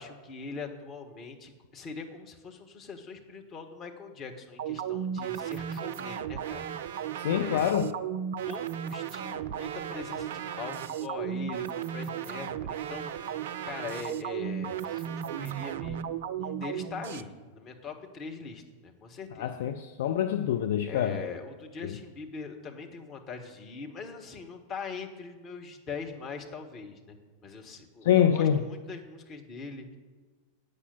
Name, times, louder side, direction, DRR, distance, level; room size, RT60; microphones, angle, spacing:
voice 1, 0.0-7.0 7.3-7.7 8.5-19.5 20.9-27.2 27.4-30.0, left 4 dB, 30° left, 3 dB, 1.5 m, -42 dB
sound 1, 4.6-17.2, right 9 dB, 55° right, 0.4 m, -35 dB
voice 2, 7.2-7.9 19.4-21.2 21.8-22.0 28.0-28.6, left 9 dB, 55° left, 7 dB, 0.5 m, -25 dB
8.3 x 6.7 x 8.4 m, 1.5 s
figure-of-eight pair, 90°, 0 cm